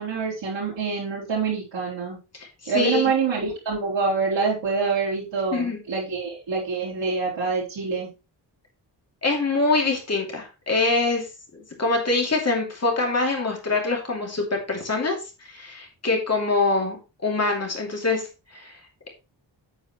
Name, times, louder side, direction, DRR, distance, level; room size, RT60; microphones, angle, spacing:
voice 1, 0.0-2.2 2.7-8.1, right 5 dB, 80° right, -8 dB, 4.2 m, -26 dB
voice 2, 2.4-3.1 5.5-5.8 9.2-11.3 11.8-15.2 15.4-17.0 17.2-18.3 18.5-18.8, left 3 dB, 35° left, 1 dB, 2.9 m, -24 dB
8.8 x 8.4 x 3.2 m, 0.29 s
wide cardioid pair, 165°, 44 cm